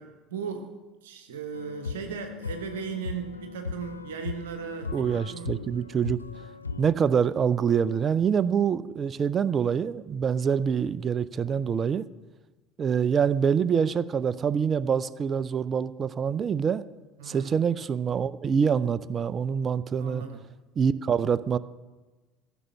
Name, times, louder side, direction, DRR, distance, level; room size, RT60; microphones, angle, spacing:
voice 1, 0.0-5.5 17.2-17.6 20.0-20.4, right 6 dB, 65° right, 6 dB, 1.1 m, -37 dB
sound 1, 1.5-6.9, left 5 dB, 85° left, 0.3 m, -38 dB
voice 2, 4.9-6.2 6.8-12.0 12.8-16.8 17.2-20.2 20.8-21.6, right 7 dB, 30° right, 18 dB, 0.5 m, -25 dB
15.0 x 6.4 x 8.4 m, 1.2 s
figure-of-eight pair, 65°, 0 cm